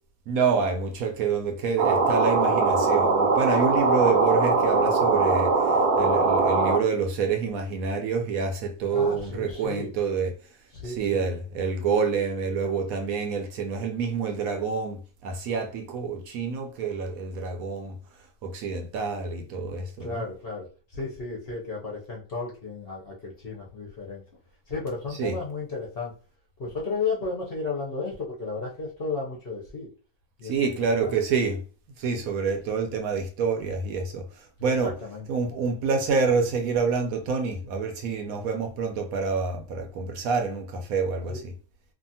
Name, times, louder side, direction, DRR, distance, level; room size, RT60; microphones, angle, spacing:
voice 1, 0.3-10.4 10.9-18.0 18.4-20.2 25.1-25.4 30.4-31.6 32.0-34.9 35.3-41.5, right 5 dB, 70° right, 1.0 m, -27 dB
sound 1, 1.8-6.8, right 3 dB, 85° right, 1.2 m, -21 dB
voice 2, 8.9-9.9 10.7-11.2 20.0-24.2 24.7-26.1 26.6-29.9 30.4-30.7 31.0-31.2 34.6-35.3 41.3-41.4, left 4 dB, 50° left, 0.8 m, -33 dB
2.7 x 2.4 x 2.6 m
omnidirectional pair, 1.6 m